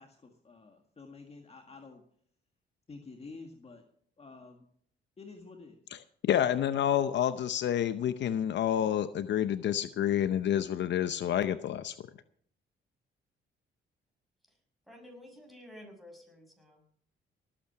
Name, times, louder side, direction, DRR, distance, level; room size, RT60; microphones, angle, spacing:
voice 1, 0.0-2.0 2.9-3.9 4.2-4.7 5.2-5.9, left 3 dB, 30° left, 3 dB, 1.8 m, -50 dB
voice 2, 6.2-11.9, left 10 dB, 65° left, 12 dB, 0.7 m, -28 dB
voice 3, 14.9-16.9, left 1 dB, ahead, 2 dB, 6.3 m, -51 dB
19.0 x 8.7 x 5.9 m, 0.62 s
cardioid pair, 90°, 20 cm